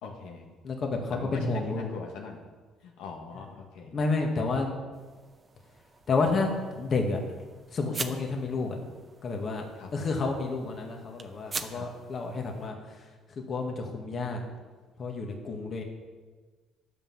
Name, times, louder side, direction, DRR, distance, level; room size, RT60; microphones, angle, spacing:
voice 1, 0.0-0.5 1.1-2.5 2.8-4.0 9.8-9.9 11.7-11.9, left 4 dB, 85° left, 0 dB, 1.6 m, -41 dB
voice 2, 0.6-1.9 3.9-4.8 6.1-7.2 7.7-8.8 9.2-9.7 9.9-12.7 13.4-14.4 15.0-15.8, left 3 dB, 45° left, 2 dB, 1.9 m, -30 dB
sound 1, 4.9-12.7, right 4 dB, 30° right, 0.8 m, -44 dB
10.5 x 6.0 x 7.3 m, 1.4 s
cardioid pair, 95°, 0 cm